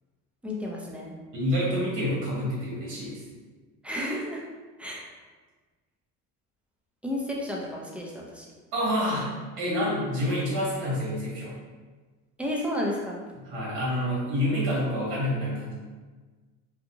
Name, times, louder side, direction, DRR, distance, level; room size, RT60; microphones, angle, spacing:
voice 1, 0.4-1.1 3.8-4.4 4.8-5.0 7.0-8.5 12.4-13.2, left 1 dB, 5° right, -3 dB, 0.5 m, -32 dB
voice 2, 1.3-3.2 8.7-9.3 9.6-11.6 13.4-15.7, equal, 85° right, -6 dB, 1.4 m, -28 dB
2.7 x 2.4 x 2.7 m, 1.4 s
supercardioid pair, 90°, 37 cm